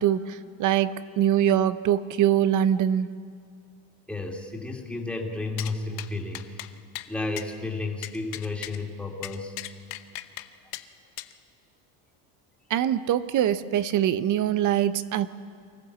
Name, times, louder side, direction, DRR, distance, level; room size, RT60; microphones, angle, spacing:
voice 1, 0.0-3.1 12.7-15.3, right 10 dB, 45° right, 14 dB, 0.8 m, -23 dB
voice 2, 4.1-6.7 7.0-9.6, left 3 dB, 5° left, 0 dB, 2.7 m, -32 dB
sound 1, 5.6-5.7 6.0-6.1 6.3-6.7 7.0-7.1 7.4-7.5 8.0-8.8 9.2-10.5 10.7-10.8 11.2-11.3, left 17 dB, 70° left, 0.9 m, -37 dB
24.0 x 15.0 x 7.4 m, 2.3 s
supercardioid pair, 120°, 43 cm